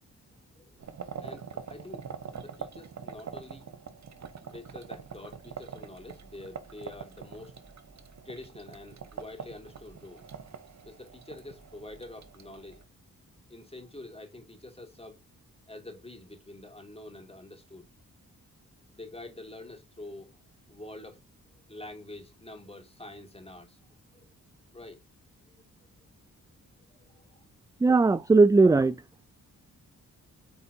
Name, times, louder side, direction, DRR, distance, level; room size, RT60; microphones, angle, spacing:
voice 1, 0.3-3.7 4.4-7.6 8.2-10.2 10.8-12.8 13.5-15.2 15.7-17.9 18.9-20.4 20.7-21.2 21.7-24.3 24.7-25.0 25.4-25.6 26.9-27.5, left 2 dB, 15° left, 2.5 m, -47 dB
sound 1, 0.8-12.8, right 6 dB, 55° right, 1.0 m, -44 dB
voice 2, 27.8-29.0, right 3 dB, 10° right, 0.3 m, -19 dB
8.4 x 4.3 x 2.7 m
cardioid pair, 65°, 34 cm